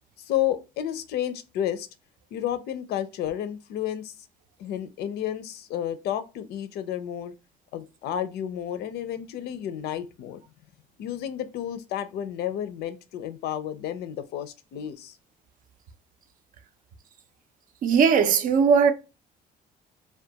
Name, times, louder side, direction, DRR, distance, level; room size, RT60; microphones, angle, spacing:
voice 1, 0.2-1.9 2.3-4.1 4.6-7.3 7.7-10.4 11.0-15.2, left 10 dB, 75° left, 0.5 m, -31 dB
voice 2, 17.8-18.9, right 6 dB, 55° right, 0.5 m, -19 dB
2.3 x 2.2 x 2.8 m
cardioid pair, 110°, 17 cm